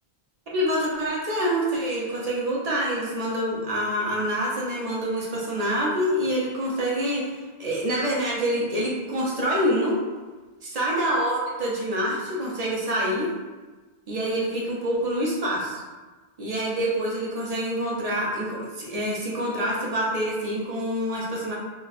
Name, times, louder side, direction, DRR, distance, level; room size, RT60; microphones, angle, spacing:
voice 1, 0.5-7.3 7.6-10.0 10.7-13.3 14.1-15.8 16.4-21.6, equal, 40° right, -5 dB, 0.8 m, -26 dB
2.5 x 2.4 x 4.1 m, 1.3 s
omnidirectional pair, 1.1 m